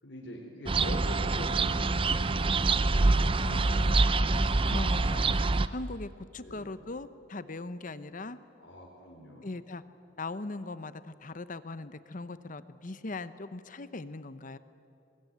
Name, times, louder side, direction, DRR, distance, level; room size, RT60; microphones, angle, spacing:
voice 1, 0.0-2.8 6.4-6.7 8.6-9.5, equal, 70° left, -2 dB, 3.9 m, -43 dB
sound 1, 0.7-5.7, right 3 dB, 30° right, 0.6 m, -26 dB
voice 2, 3.4-4.0 4.7-5.4 5.7-8.4 9.4-9.8 10.2-14.6, left 2 dB, 45° left, 13 dB, 0.9 m, -39 dB
24.5 x 21.0 x 9.3 m, 2.7 s
head